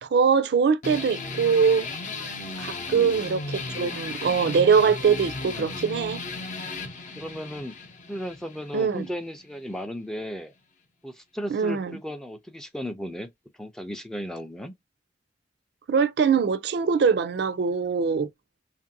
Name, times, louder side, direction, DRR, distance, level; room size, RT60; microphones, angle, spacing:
voice 1, 0.0-1.9 2.6-6.2 8.7-9.1 11.5-12.0 15.9-18.3, right 6 dB, 65° right, 0.4 m, -22 dB
sound 1, 0.8-9.9, left 3 dB, 45° left, 0.6 m, -36 dB
voice 2, 2.9-3.2 7.2-7.7 8.1-10.5 11.0-13.3 13.6-14.7, equal, 5° left, 0.4 m, -35 dB
2.9 x 2.5 x 2.5 m
head